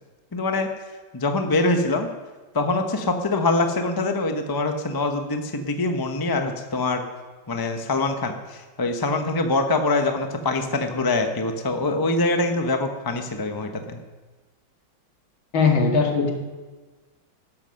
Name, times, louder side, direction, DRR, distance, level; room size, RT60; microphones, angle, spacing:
voice 1, 0.3-0.7 1.1-2.1 2.5-7.0 7.5-14.0, left 2 dB, 25° left, 5 dB, 0.4 m, -24 dB
voice 2, 15.5-16.3, left 4 dB, 70° left, 1 dB, 2.7 m, -19 dB
13.5 x 11.0 x 6.5 m, 1.3 s
omnidirectional pair, 2.2 m